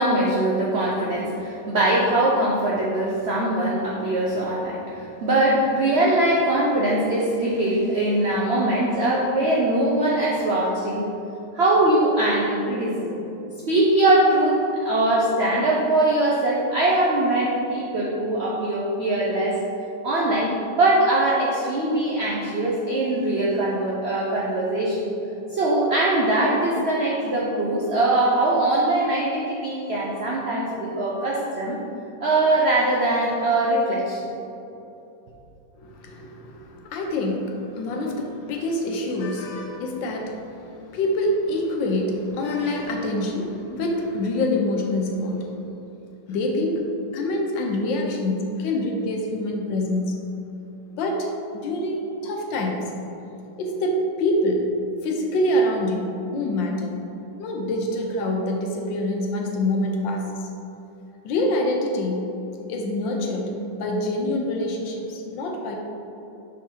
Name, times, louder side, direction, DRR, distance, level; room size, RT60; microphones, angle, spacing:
voice 1, 0.0-11.1 11.5-13.2 13.7-19.6 20.0-25.1 25.5-31.8 32.2-34.3, right 1 dB, 80° right, -4 dB, 0.5 m, -22 dB
voice 2, 35.8-45.5 46.3-46.8 47.1-50.1 51.0-52.9 53.6-54.6 55.0-57.0 57.4-60.4 61.2-62.3 62.7-65.7, left 1 dB, 80° left, 1 dB, 1.5 m, -26 dB
6.4 x 3.6 x 4.4 m, 2.8 s
omnidirectional pair, 2.0 m